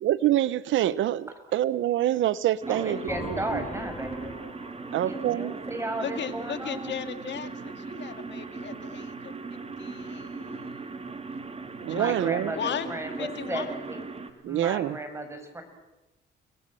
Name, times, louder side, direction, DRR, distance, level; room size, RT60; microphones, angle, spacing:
voice 1, 0.0-3.6 4.9-5.5 11.8-12.5 14.4-15.0, right 12 dB, 80° right, 17 dB, 0.9 m, -26 dB
sound 1, 2.6-14.3, right 4 dB, 30° right, 3.1 m, -38 dB
voice 2, 2.7-4.3 4.9-6.9 11.9-14.0 14.5-15.6, right 1 dB, 15° right, 6 dB, 6.6 m, -35 dB
sound 2, 3.1-6.8, left 3 dB, 20° left, 4.3 m, -42 dB
voice 3, 6.0-10.9 11.9-12.2 12.5-13.7, left 8 dB, 65° left, 9 dB, 2.1 m, -37 dB
30.0 x 21.0 x 7.8 m, 1.0 s
cardioid pair, 90°, 20 cm